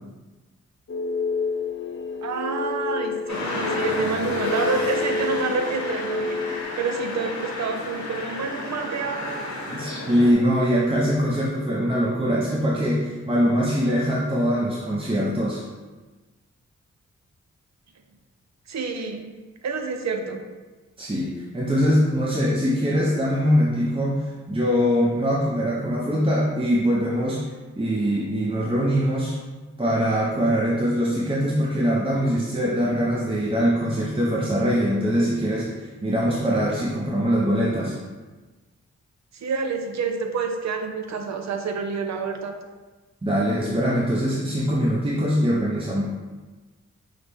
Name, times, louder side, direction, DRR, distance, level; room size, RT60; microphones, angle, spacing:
sound 1, 0.9-6.6, left 4 dB, 45° left, 0.5 m, -29 dB
voice 1, 2.2-6.4 6.8-9.5 18.7-19.3 19.6-20.4 39.4-42.5, right 4 dB, 65° right, 5 dB, 0.6 m, -28 dB
sound 2, 3.3-10.3, left 2 dB, 75° left, 1.0 m, -32 dB
voice 2, 9.7-15.6 21.0-27.4 27.8-29.3 29.8-37.9 43.2-46.0, equal, 20° right, -5 dB, 0.7 m, -22 dB
5.7 x 2.1 x 3.4 m, 1.3 s
cardioid pair, 55°, 29 cm